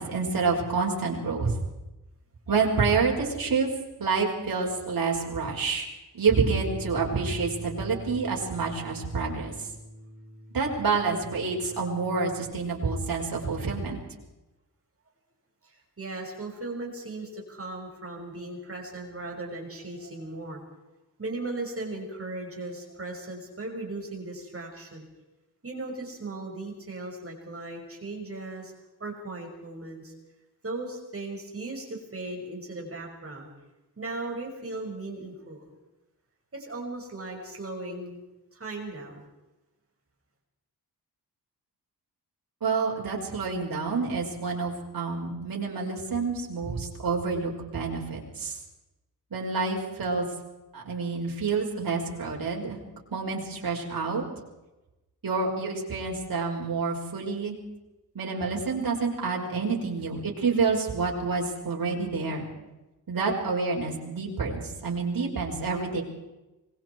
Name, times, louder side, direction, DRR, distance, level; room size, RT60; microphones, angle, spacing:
voice 1, 0.0-1.5 2.5-3.7 4.0-5.9 6.1-9.5 10.5-14.0 42.6-48.5 49.3-50.3 50.7-52.8 53.1-54.2 55.2-57.6 58.1-62.5 63.1-66.0, right 4 dB, 60° right, -1 dB, 5.9 m, -28 dB
Bass guitar, 6.3-12.5, equal, 30° left, 5.5 m, -43 dB
voice 2, 15.6-20.6 21.2-25.0 25.6-28.7 29.0-30.1 30.6-33.5 34.0-35.7 36.5-38.2 38.5-39.2, right 2 dB, 35° right, 0 dB, 6.2 m, -37 dB
26.0 x 22.0 x 4.7 m, 1.0 s
wide cardioid pair, 110°, 38 cm